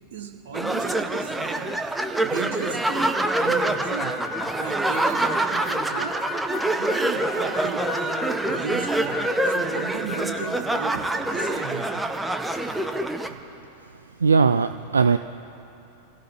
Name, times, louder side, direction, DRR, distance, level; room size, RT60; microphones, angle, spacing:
voice 1, 0.1-1.8 2.2-3.1 3.4-6.1 6.8-12.0, right 7 dB, 60° right, 3 dB, 1.5 m, -35 dB
sound 1, 0.5-13.3, right 2 dB, 5° right, 0.9 m, -26 dB
Harmonica, 4.0-11.6, left 4 dB, 45° left, 3.0 m, -36 dB
voice 2, 14.2-15.2, right 5 dB, 75° right, 11 dB, 0.3 m, -19 dB
28.0 x 17.0 x 2.9 m, 2.8 s
figure-of-eight pair, 90°, 0 cm